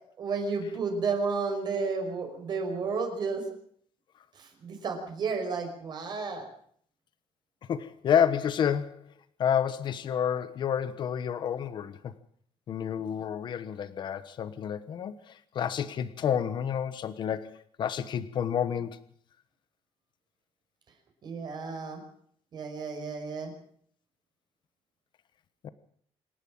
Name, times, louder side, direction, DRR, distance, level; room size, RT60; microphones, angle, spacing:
voice 1, 0.2-3.4 4.4-6.4 21.2-22.0 22.5-23.5, right 4 dB, 40° right, 4 dB, 5.5 m, -32 dB
voice 2, 7.7-9.0 9.4-12.1 12.7-19.0 25.6-25.7, left 8 dB, 45° left, 13 dB, 1.2 m, -29 dB
27.0 x 11.5 x 8.7 m, 0.62 s
cardioid pair, 180°, 11 cm